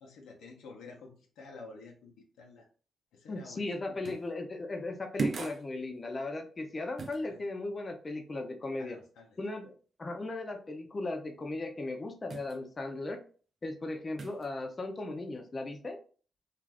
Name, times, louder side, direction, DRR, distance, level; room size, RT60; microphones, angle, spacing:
voice 1, 0.0-2.7 3.1-4.0 7.3-7.4 8.8-9.3, left 3 dB, 90° left, 1 dB, 0.7 m, -50 dB
voice 2, 3.3-9.0 9.4-9.7 10.0-13.2 13.6-16.0, left 2 dB, 40° left, 5 dB, 0.5 m, -37 dB
sound 1, 4.0-4.3 5.2-5.7 7.0-7.2 12.3-12.6 14.2-14.5, right 4 dB, 55° right, 0.5 m, -35 dB
2.5 x 2.4 x 3.3 m, 0.40 s
cardioid pair, 65°, 0 cm